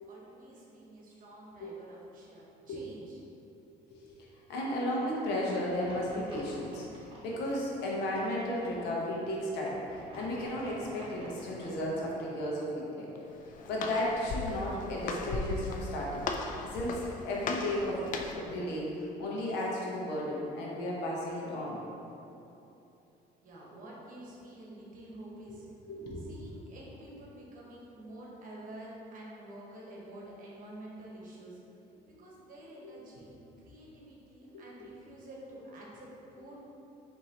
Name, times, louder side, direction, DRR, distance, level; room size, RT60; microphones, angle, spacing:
voice 1, 0.1-3.2 23.4-25.7 26.2-31.6 32.0-36.6, right 1 dB, 55° right, -4 dB, 1.1 m, -49 dB
voice 2, 4.5-6.8 7.2-9.8 10.1-13.1 13.7-16.3 16.7-18.0 18.3-21.8 25.5-25.6 25.9-26.2, left 1 dB, 80° left, -4 dB, 1.0 m, -34 dB
sound 1, 5.6-12.2, equal, 30° right, 1.2 m, -51 dB
Walk footsteps, 13.2-18.5, left 3 dB, 50° left, 0.4 m, -37 dB
4.2 x 2.9 x 3.8 m, 2.9 s
cardioid pair, 110°, 17 cm